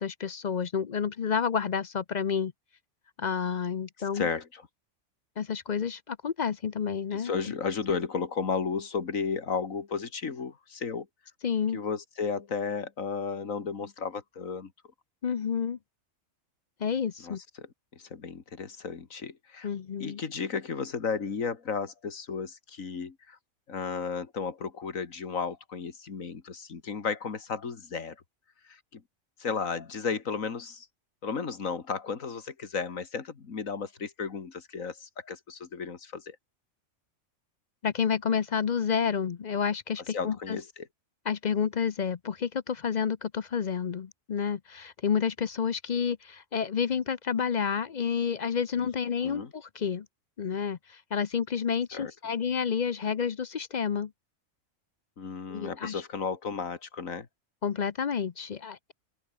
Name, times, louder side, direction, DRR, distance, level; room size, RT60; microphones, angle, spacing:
voice 1, 0.0-2.5 3.2-4.3 5.4-7.5 11.4-11.8 15.2-15.8 16.8-17.4 19.6-20.2 37.8-40.6 41.2-50.1 50.4-54.1 55.5-56.0 57.6-58.9, left 7 dB, 45° left, 0.6 m, -30 dB
voice 2, 4.1-4.6 7.1-11.1 11.7-14.7 17.2-17.4 17.9-19.7 20.0-23.4 23.7-28.2 28.7-29.0 29.4-30.9 31.2-36.4 40.1-40.6 48.8-48.9 49.2-49.5 51.9-52.1 55.2-57.3, left 5 dB, 80° left, 2.3 m, -34 dB
open air
omnidirectional pair, 1.4 m